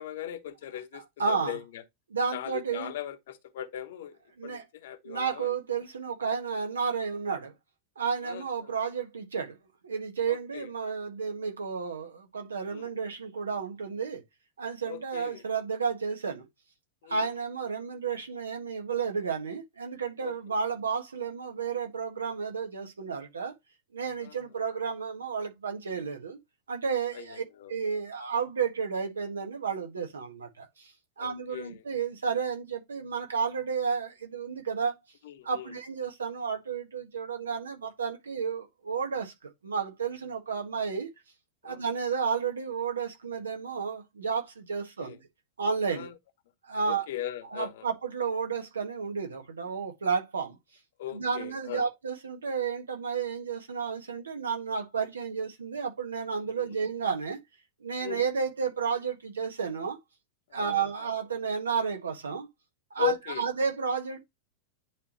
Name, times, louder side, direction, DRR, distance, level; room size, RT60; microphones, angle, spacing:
voice 1, 0.0-1.8 2.3-4.2 4.4-5.5 8.2-8.7 10.3-10.7 12.7-12.9 14.8-15.4 17.0-17.2 20.2-20.3 24.2-24.4 27.1-27.7 31.2-31.8 35.2-35.7 41.6-41.9 45.0-45.2 45.9-46.1 46.8-47.9 51.0-51.9 56.6-56.8 58.0-58.2 60.5-60.9 63.0-63.4, left 13 dB, 55° left, 1.0 m, -38 dB
voice 2, 0.9-1.6 2.1-2.9 4.4-4.6 5.0-7.5 8.0-9.6 9.8-14.2 14.6-16.4 17.1-23.5 23.9-26.4 26.7-27.4 27.7-30.9 31.2-34.9 35.4-41.1 41.6-45.2 45.6-46.1 46.7-47.1 47.5-50.6 51.1-57.4 57.8-60.0 60.5-62.5 62.9-64.2, right 6 dB, 70° right, 1.6 m, -32 dB
10.5 x 3.5 x 3.0 m
figure-of-eight pair, 90°, 0 cm